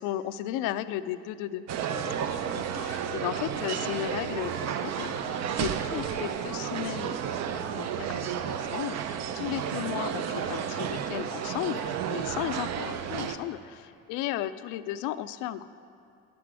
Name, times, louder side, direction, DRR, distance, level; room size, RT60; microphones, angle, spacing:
voice 1, 0.0-7.2 7.5-11.8 12.1-15.7, left 12 dB, 70° left, 14 dB, 0.5 m, -35 dB
sound 1, 1.7-13.4, right 8 dB, 55° right, 0.6 m, -32 dB
sound 2, 2.5-3.0 3.4-6.7 7.1-7.2 8.7-12.4 13.1-13.3, right 2 dB, 80° right, 1.4 m, -47 dB
11.0 x 6.1 x 4.7 m, 2.5 s
supercardioid pair, 75°, 32 cm